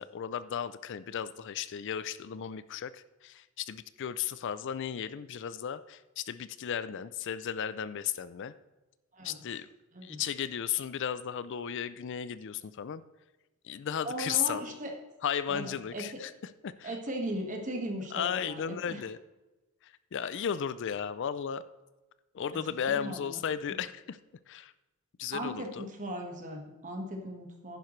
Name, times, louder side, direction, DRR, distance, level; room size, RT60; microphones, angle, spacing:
voice 1, 0.0-8.5 9.2-9.7 10.0-13.0 13.6-14.6 15.2-16.9 18.1-19.2 19.8-21.6 22.3-24.2 24.5-24.7 25.2-25.9, left 8 dB, 55° left, 15 dB, 0.4 m, -35 dB
voice 2, 14.0-14.9 15.5-16.2 16.8-19.0 22.5-23.4 25.3-27.8, right 1 dB, 35° right, 2 dB, 1.6 m, -38 dB
10.5 x 10.5 x 3.2 m, 1.1 s
head